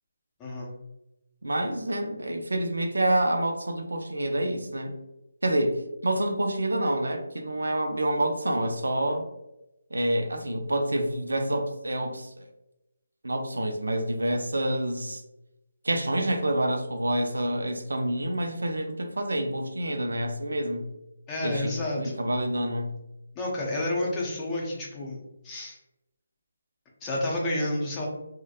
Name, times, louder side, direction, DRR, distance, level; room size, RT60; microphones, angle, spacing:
voice 1, 0.4-0.7 21.3-22.2 23.4-25.8 27.0-28.1, left 1 dB, 15° left, -3 dB, 0.5 m, -30 dB
voice 2, 1.4-4.9 5.4-9.3 9.9-12.3 13.2-15.2 15.8-20.9 21.4-22.9, right 1 dB, 85° right, 5 dB, 0.4 m, -27 dB
2.8 x 2.1 x 2.3 m, 0.93 s
figure-of-eight pair, 155°, 0 cm